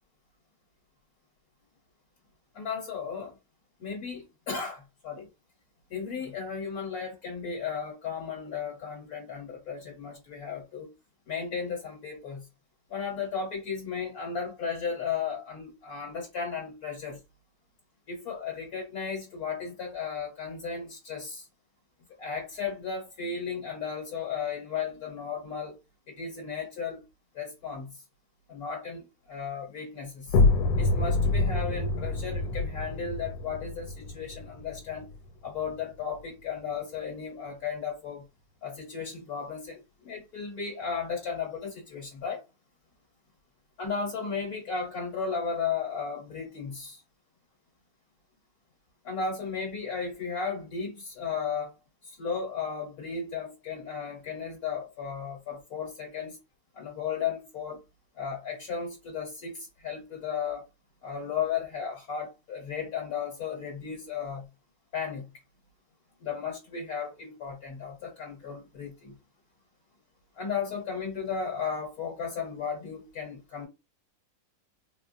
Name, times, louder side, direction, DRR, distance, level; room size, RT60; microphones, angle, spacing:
voice 1, 2.5-3.3 3.8-5.3 5.9-10.9 11.3-12.4 12.9-17.2 18.1-21.4 22.2-25.8 26.1-27.0 27.3-27.9 28.5-30.3 30.8-35.1 35.4-38.2 38.6-42.4 43.8-47.0 49.0-51.7 52.1-56.4 56.7-57.8 58.2-60.6 61.0-64.4 64.9-65.3 66.2-69.1 70.4-73.7, left 6 dB, 55° left, 1.4 m, -35 dB
sound 1, 30.3-35.8, left 3 dB, 80° left, 1.3 m, -27 dB
4.1 x 2.2 x 2.6 m
omnidirectional pair, 2.0 m